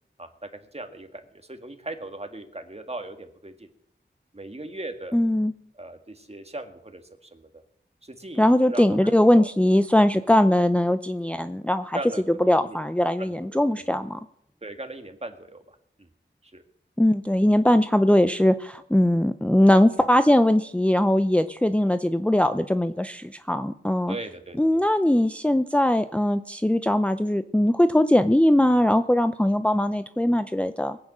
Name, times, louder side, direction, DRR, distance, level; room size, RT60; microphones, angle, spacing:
voice 1, 0.2-3.7 4.3-5.2 5.8-7.0 7.3-7.5 8.0-9.5 11.9-12.8 13.2-14.0 14.6-16.1 16.5-16.6 24.1-24.9, right 2 dB, 30° right, 6 dB, 1.8 m, -39 dB
voice 2, 5.1-5.5 8.4-12.0 12.5-14.2 17.0-24.2 24.6-31.0, left 1 dB, 5° left, 9 dB, 0.6 m, -20 dB
20.5 x 9.0 x 6.2 m, 0.74 s
wide cardioid pair, 65°, 20 cm